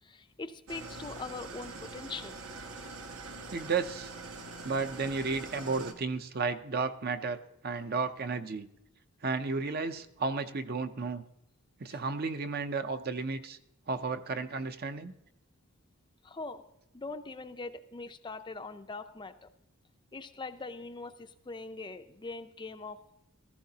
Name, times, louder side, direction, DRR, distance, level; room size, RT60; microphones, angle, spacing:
voice 1, 0.0-2.4 11.9-12.0 16.2-16.6 16.9-19.5 20.1-23.0, left 3 dB, 20° left, 8 dB, 0.5 m, -42 dB
Engine starting / Idling, 0.7-5.9, right 3 dB, 80° right, 1.4 m, -44 dB
voice 2, 3.5-4.1 4.6-8.7 9.2-11.2 11.8-13.6 13.9-15.1, right 4 dB, 45° right, 9 dB, 0.6 m, -33 dB
15.5 x 14.5 x 2.8 m, 0.82 s
head